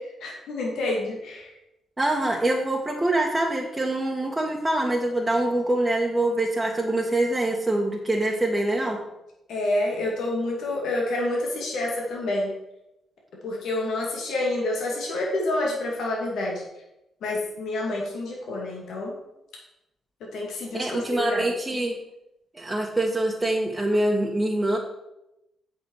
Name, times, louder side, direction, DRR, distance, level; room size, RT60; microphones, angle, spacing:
voice 1, 0.2-1.5 9.5-12.5 13.4-16.6 17.2-19.1 20.3-21.5, left 2 dB, 70° left, -2 dB, 2.3 m, -28 dB
voice 2, 2.0-9.0 20.7-22.0 22.5-24.8, right 1 dB, 20° right, -1 dB, 1.5 m, -24 dB
8.0 x 6.0 x 4.7 m, 0.89 s
hypercardioid pair, 40°, 0 cm